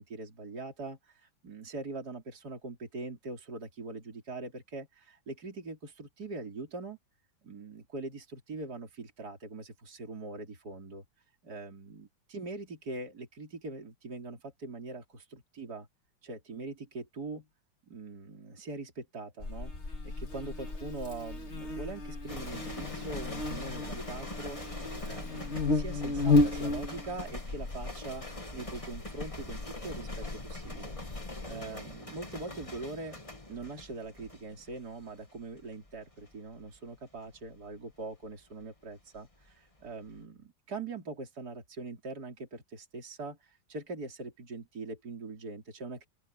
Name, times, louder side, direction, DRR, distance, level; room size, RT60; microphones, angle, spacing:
voice 1, 0.0-7.0 7.4-11.0 11.4-15.9 16.2-17.5 17.9-19.7 20.0-28.2 28.5-33.2 33.5-46.1, right 3 dB, 50° right, 4.2 m, -42 dB
Buzz, 19.4-31.5, left 3 dB, 35° left, 2.4 m, -33 dB
sound 1, 22.3-39.5 39.8-40.2, left 2 dB, 15° left, 2.2 m, -44 dB
open air
omnidirectional pair, 2.2 m